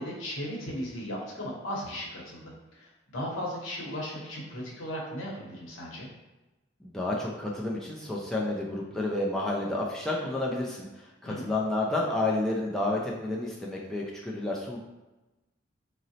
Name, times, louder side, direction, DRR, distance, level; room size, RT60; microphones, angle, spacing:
voice 1, 0.0-6.1 11.3-11.5, equal, 90° left, -3 dB, 0.8 m, -36 dB
voice 2, 6.8-14.8, left 2 dB, ahead, -4 dB, 0.3 m, -30 dB
3.8 x 2.0 x 2.7 m, 1.1 s
head